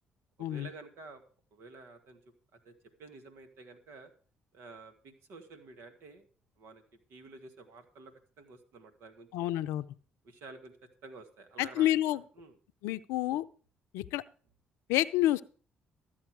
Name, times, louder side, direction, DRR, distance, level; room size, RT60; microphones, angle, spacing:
voice 1, 0.4-1.2 1.5-2.2 2.5-4.1 4.5-6.3 6.6-6.8 7.1-9.7 10.2-10.7 11.0-12.6, right 3 dB, 70° right, 7 dB, 2.0 m, -51 dB
voice 2, 9.3-9.8 11.6-12.2 12.8-13.4 13.9-14.2 14.9-15.4, left 14 dB, 80° left, 15 dB, 0.5 m, -28 dB
13.5 x 8.5 x 4.8 m, 0.40 s
hypercardioid pair, 55°, 4 cm